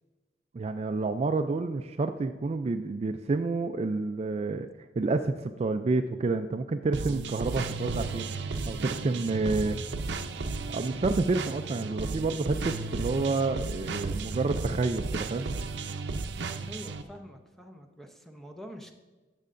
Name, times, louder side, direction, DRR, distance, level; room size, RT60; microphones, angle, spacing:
voice 1, 0.5-4.7 5.0-8.3 8.7-9.8 10.7-15.5, right 3 dB, 35° right, 8 dB, 0.3 m, -29 dB
sound 1, 6.9-17.0, right 3 dB, 80° right, 0.6 m, -34 dB
voice 2, 16.6-18.9, equal, ahead, 4 dB, 0.7 m, -45 dB
15.0 x 6.5 x 2.5 m, 1.3 s
head